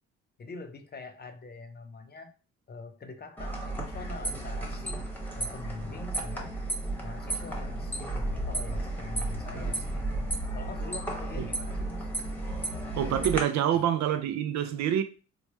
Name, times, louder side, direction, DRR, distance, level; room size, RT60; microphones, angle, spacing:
voice 1, 0.4-2.4 2.7-5.1 5.4-6.6 7.0-10.0 10.5-12.1 13.6-13.9, left 3 dB, 35° left, 0.5 m, -44 dB
sound 1, 3.4-13.4, right 1 dB, 5° left, 0.9 m, -33 dB
voice 2, 13.0-15.0, right 10 dB, 65° right, 0.5 m, -26 dB
3.1 x 2.1 x 3.1 m
cardioid pair, 90°, 30 cm